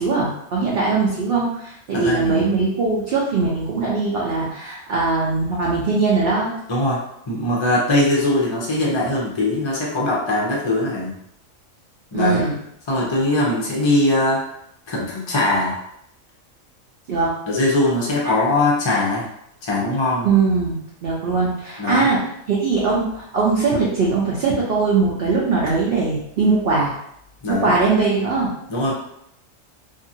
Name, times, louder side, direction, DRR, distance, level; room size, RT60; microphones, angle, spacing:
voice 1, 0.0-6.5 12.1-12.5 17.1-17.3 20.2-22.2 22.5-26.9 27.5-28.5, right 4 dB, 55° right, -5 dB, 0.7 m, -20 dB
voice 2, 1.9-2.5 6.7-7.0 7.3-11.1 12.1-12.5 12.9-14.4 14.9-15.8 17.5-19.2 19.6-20.3 21.8-22.1 27.4-27.7 28.7-28.9, left 2 dB, 40° left, -4 dB, 0.4 m, -21 dB
2.7 x 2.5 x 2.6 m, 0.74 s
omnidirectional pair, 1.4 m